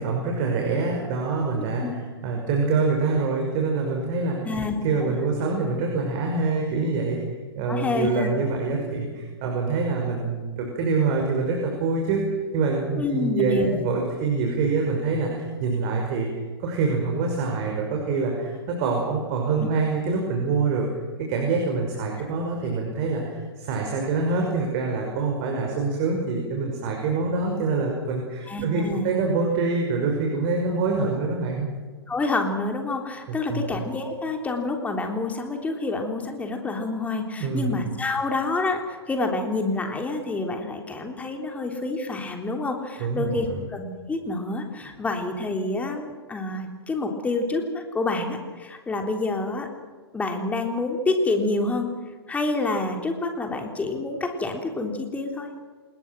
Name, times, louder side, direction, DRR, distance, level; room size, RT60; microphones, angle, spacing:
voice 1, 0.0-4.4 4.8-12.2 12.5-16.3 16.6-20.9 21.2-31.7 33.3-33.7 37.4-37.8 43.0-43.6, right 4 dB, 40° right, 1 dB, 5.9 m, -25 dB
voice 2, 4.4-5.2 7.6-8.3 13.0-13.8 19.6-19.7 28.5-29.1 32.1-49.7 50.1-51.9 52.3-55.5, left 3 dB, 10° left, 3 dB, 3.5 m, -28 dB
27.5 x 21.0 x 6.2 m, 1.5 s
figure-of-eight pair, 115°, 13 cm